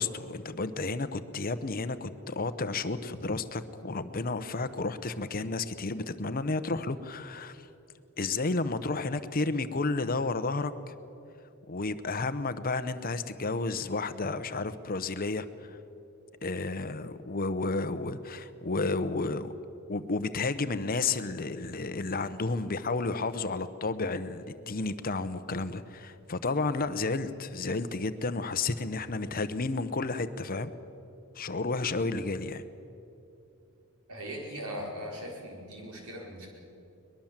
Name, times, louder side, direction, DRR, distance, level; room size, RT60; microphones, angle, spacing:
voice 1, 0.0-7.7 8.2-10.7 11.7-15.7 16.4-19.5 19.9-30.7 31.3-32.6, left 3 dB, 45° left, 12 dB, 0.9 m, -32 dB
voice 2, 34.1-36.5, equal, 90° right, 0 dB, 4.7 m, -39 dB
22.5 x 21.0 x 7.4 m, 2.8 s
head